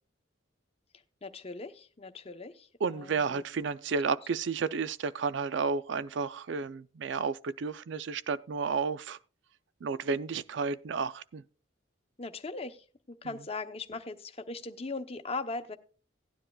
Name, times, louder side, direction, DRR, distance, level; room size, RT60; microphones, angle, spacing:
voice 1, 1.2-2.7 3.3-3.4 12.2-15.8, left 3 dB, 30° left, 0.8 m, -39 dB
voice 2, 2.8-9.2 9.8-11.4 13.2-13.5, right 5 dB, 60° right, 0.4 m, -32 dB
17.0 x 10.0 x 2.3 m
head